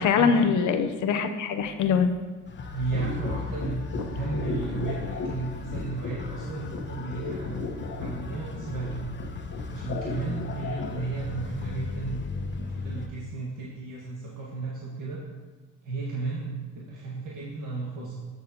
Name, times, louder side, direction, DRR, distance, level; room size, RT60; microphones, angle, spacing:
voice 1, 0.0-2.1, left 6 dB, 80° left, 7 dB, 0.8 m, -23 dB
sound 1, 2.5-13.1, left 4 dB, 40° left, 1.0 m, -37 dB
voice 2, 2.7-3.8 4.1-9.1 9.7-12.2 12.6-15.2 15.8-18.2, right 3 dB, 80° right, -6 dB, 1.8 m, -34 dB
sound 2, 2.9-11.0, left 3 dB, 55° left, 1.3 m, -36 dB
15.5 x 7.1 x 2.9 m, 1.4 s
cardioid pair, 90°, 30 cm